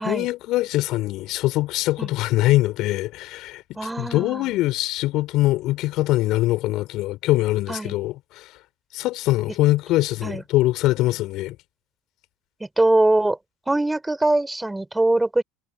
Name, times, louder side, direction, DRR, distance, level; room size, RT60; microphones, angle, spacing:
voice 1, 0.0-3.6 4.0-8.5 8.9-11.6, left 17 dB, 55° left, 4.4 m, -23 dB
voice 2, 3.8-4.4 7.7-7.9 10.2-10.4 12.8-13.4 13.7-15.4, right 2 dB, 10° right, 5.1 m, -22 dB
figure-of-eight pair, 70°, 0 cm